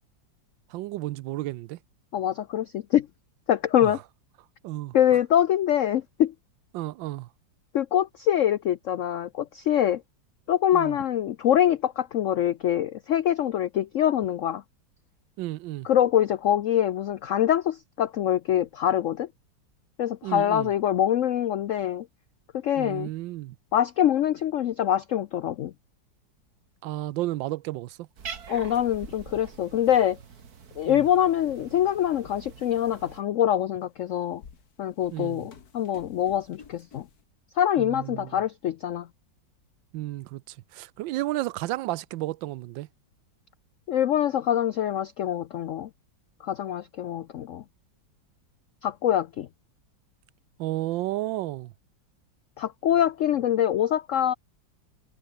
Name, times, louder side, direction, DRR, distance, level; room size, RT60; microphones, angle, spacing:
voice 1, 0.7-1.8 3.8-3.9 4.6-5.0 6.7-7.3 10.7-11.0 15.4-15.9 20.2-20.7 22.8-23.5 26.8-28.1 30.8-31.1 35.1-35.5 37.8-38.3 39.9-42.9 50.6-51.7, right 17 dB, 80° right, 1.3 m, -32 dB
voice 2, 2.1-3.1 3.5-4.0 4.9-6.3 7.7-10.0 10.5-14.6 15.8-19.3 20.0-22.1 22.6-23.1 23.7-25.7 28.5-30.2 30.8-34.4 34.8-37.1 37.6-39.1 43.9-45.9 46.4-47.6 48.8-49.5 52.6-54.3, left 10 dB, 90° left, 0.6 m, -24 dB
Cat, 28.2-33.2, right 6 dB, 55° right, 2.1 m, -44 dB
sound 1, 31.1-31.2 31.6-32.1 32.8-32.9 33.9-37.2, left 6 dB, 55° left, 2.3 m, -52 dB
omnidirectional pair, 2.0 m